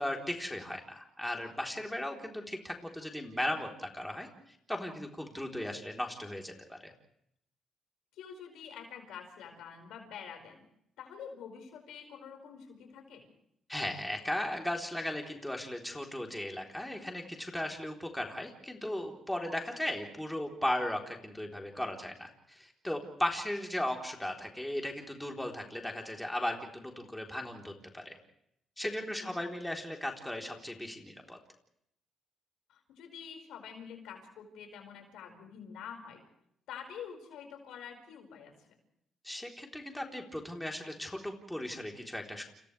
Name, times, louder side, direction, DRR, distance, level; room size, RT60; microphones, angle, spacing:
voice 1, 0.0-6.9 13.7-28.2 28.8-31.4 39.2-42.4, left 1 dB, 5° left, 1 dB, 3.7 m, -37 dB
voice 2, 8.2-10.6 11.0-13.3 29.0-29.3 32.7-36.2 36.7-38.5, left 7 dB, 85° left, 4 dB, 5.3 m, -47 dB
29.5 x 29.5 x 3.4 m, 0.73 s
cardioid pair, 90°, 0 cm